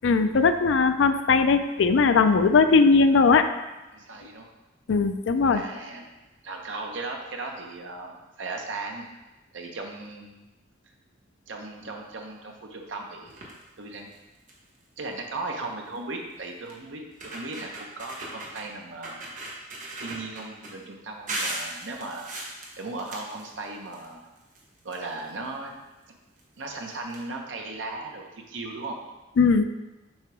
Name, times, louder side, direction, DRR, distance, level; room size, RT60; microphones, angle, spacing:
voice 1, 0.0-3.5 4.9-5.6 29.4-29.6, left 4 dB, 70° left, 9 dB, 0.4 m, -19 dB
voice 2, 3.9-4.5 5.5-6.1 6.4-9.1 9.5-10.5 11.5-13.4 13.8-14.1 15.0-19.2 20.0-22.4 22.8-24.2 24.8-25.7 26.6-29.0, right 3 dB, 70° right, 2 dB, 0.8 m, -37 dB
sound 1, 13.3-13.6 14.1-14.2 14.5-14.8 16.0-16.1 16.7-16.8 17.1-18.6 19.0-20.7 21.3-24.1 24.4-25.5 26.4-26.5 26.7-26.8 27.1-27.2, right 2 dB, 40° right, 1.1 m, -37 dB
7.3 x 2.9 x 4.7 m, 1.1 s
head